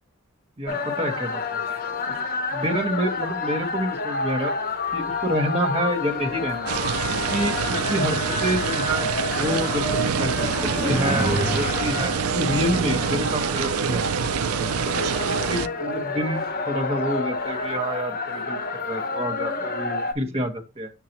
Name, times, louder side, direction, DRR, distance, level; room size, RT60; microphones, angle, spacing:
voice 1, 0.6-1.6 2.1-2.2 2.5-4.5 4.9-6.7 7.3-9.1 9.3-14.1 14.9-15.0 15.5-20.9, equal, 30° right, 2 dB, 1.4 m, -28 dB
sound 1, 0.7-20.1, left 3 dB, 45° left, 0.9 m, -29 dB
sound 2, 2.5-3.0 4.0-4.1 4.7-14.6 14.9-17.5, right 1 dB, 5° right, 0.3 m, -36 dB
sound 3, 6.7-15.7, right 7 dB, 85° right, 0.4 m, -26 dB
6.6 x 6.5 x 2.9 m, 0.27 s
head